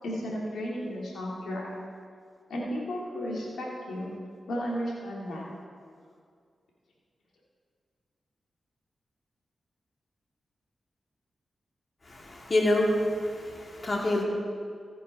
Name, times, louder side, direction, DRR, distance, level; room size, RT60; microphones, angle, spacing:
voice 1, 0.0-1.7 2.5-4.1 4.5-5.5, equal, 85° left, -4 dB, 2.0 m, -34 dB
voice 2, 12.1-14.2, left 1 dB, 45° left, -1 dB, 2.2 m, -27 dB
14.5 x 6.2 x 5.3 m, 2.2 s
cardioid pair, 45°, 0 cm